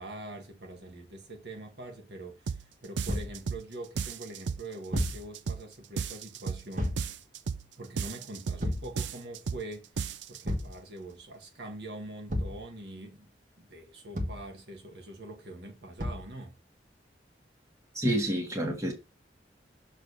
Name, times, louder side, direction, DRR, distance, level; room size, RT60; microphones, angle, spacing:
voice 1, 0.0-7.0 7.8-13.3 13.6-16.5, right 2 dB, 65° right, 1.3 m, -44 dB
sound 1, 2.5-2.7 3.0-3.7 4.0-4.7 5.0-5.7 6.0-6.7 7.0-7.7 8.0-8.7 9.0-9.7 10.0-10.4, right 6 dB, 85° right, 0.5 m, -34 dB
Thump thud, 3.1-3.4 4.9-5.3 6.7-7.1 8.6-8.9 10.4-10.8 12.3-12.6 14.1-14.5 16.0-16.3, equal, 45° right, 1.3 m, -32 dB
voice 2, 17.9-18.9, right 1 dB, 20° right, 1.4 m, -28 dB
6.5 x 3.3 x 5.3 m
head